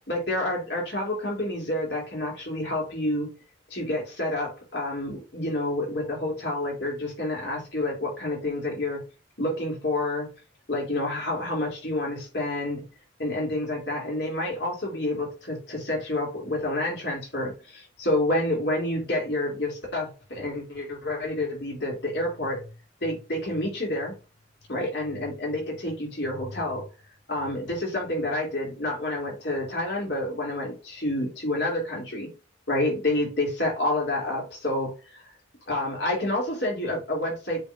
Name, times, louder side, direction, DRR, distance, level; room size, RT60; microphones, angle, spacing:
voice 1, 0.1-3.3 3.7-9.0 9.4-10.3 10.7-12.8 13.2-22.7 23.0-24.1 24.7-26.9 27.3-32.3 32.7-35.3 35.7-37.7, left 1 dB, 60° left, -2 dB, 3.2 m, -29 dB
7.8 x 4.6 x 2.7 m, 0.31 s
head